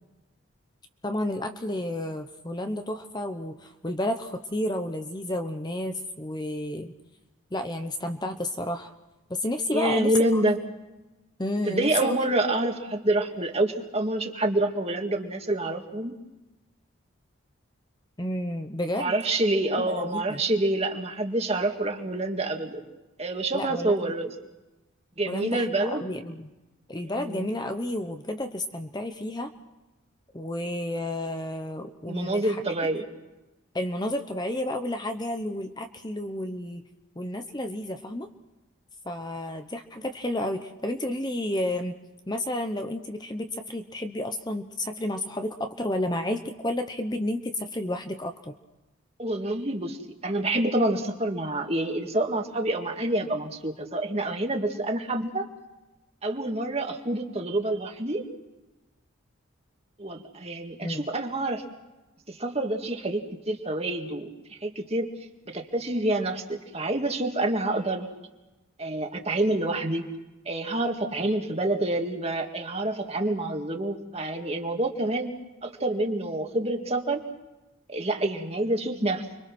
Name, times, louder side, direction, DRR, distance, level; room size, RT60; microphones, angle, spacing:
voice 1, 1.0-6.9 7.5-8.9 9.3-10.4 11.4-12.2 18.2-19.1 19.8-20.4 23.5-24.1 25.3-26.5 26.9-29.5 30.3-32.6 33.7-36.8 37.2-38.3 39.0-41.9 42.3-48.5 60.8-61.1, left 1 dB, 20° left, 6 dB, 0.9 m, -31 dB
voice 2, 9.7-10.6 11.7-16.2 18.9-22.8 23.2-24.3 25.2-26.0 27.1-27.5 32.1-33.1 49.2-55.5 56.2-58.3 60.0-61.6 62.3-65.1 65.5-68.1 68.8-70.1 70.5-75.3 75.6-77.2 77.9-79.3, right 1 dB, 30° right, 4 dB, 2.1 m, -27 dB
30.0 x 23.5 x 6.1 m, 1.0 s
head